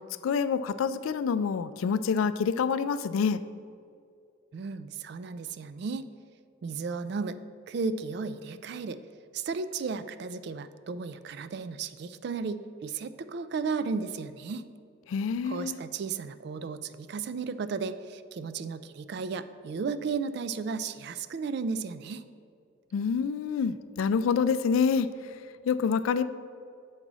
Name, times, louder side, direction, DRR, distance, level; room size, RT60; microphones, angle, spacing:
voice 1, 0.2-3.4 15.1-15.8 22.9-25.1 25.6-26.2, left 6 dB, 85° left, 14 dB, 0.3 m, -27 dB
voice 2, 4.5-6.1 6.6-7.4 7.7-9.0 9.3-14.6 15.4-22.2, right 5 dB, 55° right, 12 dB, 0.3 m, -34 dB
7.3 x 3.9 x 6.1 m, 2.3 s
head